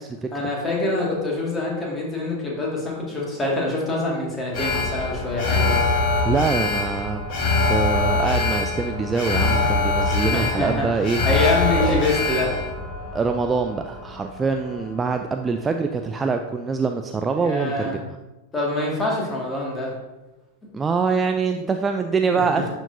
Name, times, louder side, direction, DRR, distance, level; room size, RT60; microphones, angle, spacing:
voice 1, 0.3-5.8 10.2-10.9 11.3-12.6 17.4-18.0 18.5-20.0 20.6-20.7 22.3-22.7, left 2 dB, 15° left, -3 dB, 2.1 m, -25 dB
Alarm, 4.5-14.8 15.2-15.3, left 3 dB, 40° left, 1.7 m, -23 dB
voice 2, 6.2-7.2 7.7-11.2 11.8-12.0 13.1-18.0 20.7-22.7, right 4 dB, 15° right, 5 dB, 0.3 m, -24 dB
11.0 x 4.5 x 2.7 m, 1.1 s
figure-of-eight pair, 90°, 0 cm